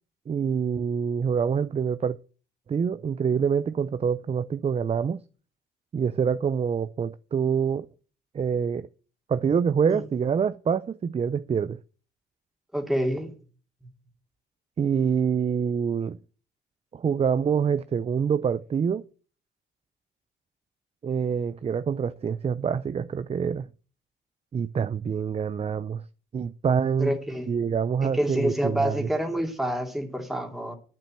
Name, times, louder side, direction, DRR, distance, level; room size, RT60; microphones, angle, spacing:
voice 1, 0.3-2.2 2.7-5.2 5.9-7.9 8.3-8.9 9.3-11.8 14.8-16.2 16.9-19.0 21.0-23.7 24.5-26.0 26.3-27.1 27.5-29.1, right 7 dB, 30° right, 0.5 m, -26 dB
voice 2, 12.7-13.4 27.0-27.5 28.0-30.7, equal, ahead, 2.5 m, -27 dB
9.1 x 7.5 x 7.5 m
cardioid pair, 90°, 20 cm